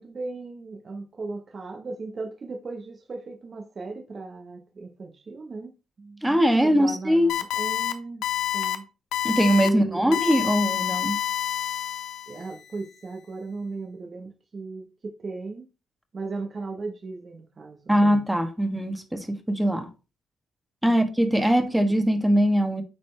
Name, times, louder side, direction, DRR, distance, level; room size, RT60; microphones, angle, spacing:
voice 1, 0.0-6.2 6.5-8.2 8.5-8.9 9.6-10.2 12.3-15.7 16.1-18.1 20.8-21.0, right 3 dB, 40° right, 1.0 m, -37 dB
voice 2, 6.2-7.3 9.2-11.2 17.9-19.9 20.8-22.8, equal, 5° right, 1.3 m, -21 dB
sound 1, 7.3-7.9 8.2-8.8 9.1-9.7 10.1-12.4, left 12 dB, 80° left, 0.8 m, -28 dB
8.8 x 4.2 x 3.3 m
cardioid pair, 90°, 0 cm